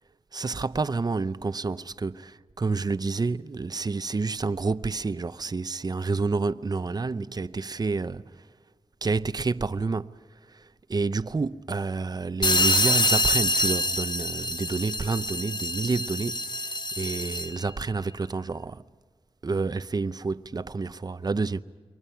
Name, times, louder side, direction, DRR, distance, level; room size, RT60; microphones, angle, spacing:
voice 1, 0.3-8.5 9.0-18.8 19.4-21.6, right 4 dB, 40° right, 0.6 m, -29 dB
sound 1, 12.4-17.6, left 1 dB, 45° left, 1.0 m, -26 dB
29.0 x 23.0 x 5.8 m
wide cardioid pair, 90°, 10 cm